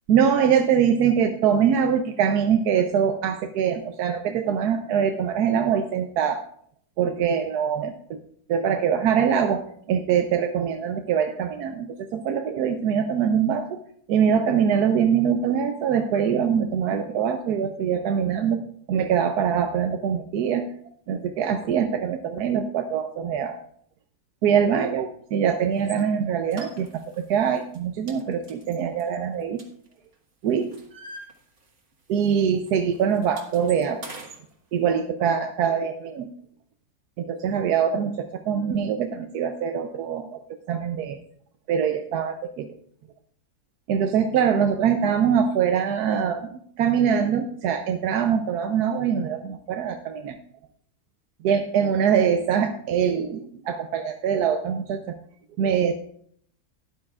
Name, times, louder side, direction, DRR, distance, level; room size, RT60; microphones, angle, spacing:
voice 1, 0.1-6.4 7.0-8.2 8.5-13.8 14.1-18.6 18.9-20.7 21.1-23.6 24.4-29.6 30.4-30.8 32.1-34.0 34.7-36.3 37.2-40.4 40.7-41.2 41.7-42.7 43.9-50.4 51.4-55.2 55.6-55.9, right 7 dB, 85° right, 6 dB, 1.2 m, -23 dB
sound 1, 25.8-26.0 26.5-27.2 27.6-27.8 28.1-30.1 30.5-32.4 32.7-34.4, right 2 dB, 50° right, 1.8 m, -43 dB
13.0 x 11.0 x 2.4 m, 0.62 s
omnidirectional pair, 1.7 m